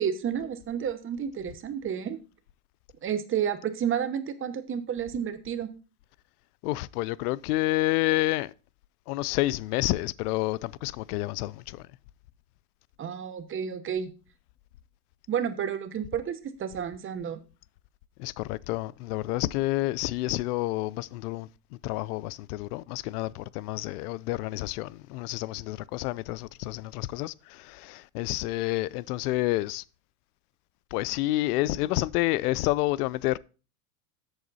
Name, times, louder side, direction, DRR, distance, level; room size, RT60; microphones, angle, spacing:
voice 1, 0.0-2.2 3.0-5.7 13.0-14.1 15.3-17.4, right 8 dB, 30° right, 0.9 m, -31 dB
voice 2, 6.6-8.5 9.1-11.8 18.2-21.5 21.8-29.8 30.9-33.4, left 18 dB, 85° left, 0.5 m, -29 dB
8.0 x 6.9 x 4.0 m
supercardioid pair, 125°, 44 cm